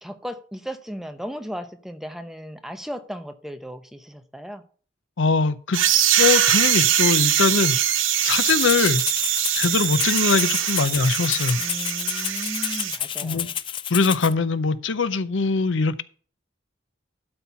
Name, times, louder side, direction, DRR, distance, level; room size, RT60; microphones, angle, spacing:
voice 1, 0.0-4.6 11.6-13.5, equal, ahead, 8 dB, 0.7 m, -36 dB
voice 2, 5.2-5.8 6.2-7.8 8.2-9.0 9.5-11.6 13.2-13.5 13.9-16.0, left 4 dB, 70° left, 14 dB, 0.6 m, -22 dB
sound 1, 5.7-13.0, right 10 dB, 80° right, 0.9 m, -22 dB
Rattle (instrument), 8.3-14.3, left 10 dB, 25° left, 0.4 m, -30 dB
12.5 x 4.4 x 5.6 m, 0.42 s
head